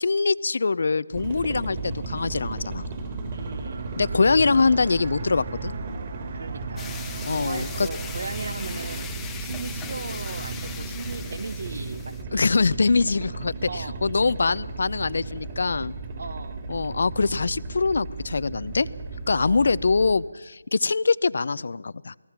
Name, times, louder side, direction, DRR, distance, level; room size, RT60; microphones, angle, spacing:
voice 1, 0.0-2.9 4.0-5.7 7.3-7.9 12.3-15.9 16.7-18.9 19.3-22.2, left 4 dB, 55° left, 19 dB, 0.6 m, -23 dB
sound 1, 1.1-20.1, right 3 dB, 25° right, 3.2 m, -35 dB
sound 2, 2.9-9.1, right 4 dB, 40° right, 1.0 m, -41 dB
voice 2, 3.3-3.9 6.3-12.4 13.6-14.0 14.3-14.4 16.1-16.7 19.3-19.7, right 4 dB, 60° right, 13 dB, 1.6 m, -38 dB
sound 3, 6.8-12.2, left 7 dB, 5° left, 1.0 m, -40 dB
28.5 x 20.0 x 5.9 m, 1.2 s
figure-of-eight pair, 165°, 0 cm